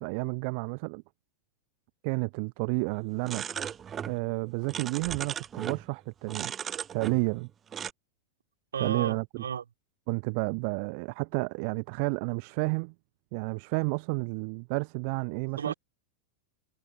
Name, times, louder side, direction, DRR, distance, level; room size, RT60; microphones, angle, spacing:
voice 1, 0.0-1.0 2.0-3.7 4.1-6.5 6.9-7.5 8.8-9.2 10.1-12.9 13.3-15.7, right 35 dB, 45° right, 0.6 m, -31 dB
sound 1, 3.2-4.2 4.4-5.8 6.3-7.4 7.7-7.9, right 8 dB, 25° right, 0.9 m, -37 dB
voice 2, 8.7-9.6 15.6-15.7, right 8 dB, 70° right, 2.1 m, -32 dB
figure-of-eight pair, 90°, 0 cm